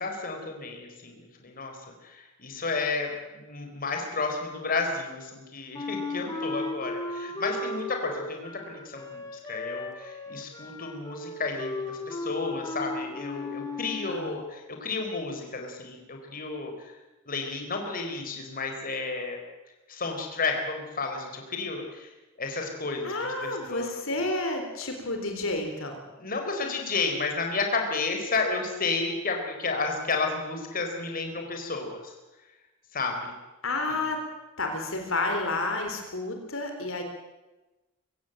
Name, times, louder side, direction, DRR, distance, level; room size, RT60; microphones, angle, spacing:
voice 1, 0.0-16.9 17.3-19.4 19.9-22.1 22.4-23.9 26.2-32.1 32.9-33.3 33.9-34.0, left 3 dB, 45° left, 3 dB, 4.2 m, -32 dB
Wind instrument woodwind instrument, 5.7-14.2, left 2 dB, 20° left, 3.2 m, -36 dB
voice 2, 23.0-26.0 33.6-34.2 34.6-37.0, left 2 dB, 75° left, 4 dB, 4.0 m, -30 dB
23.5 x 16.5 x 9.0 m, 1.1 s
head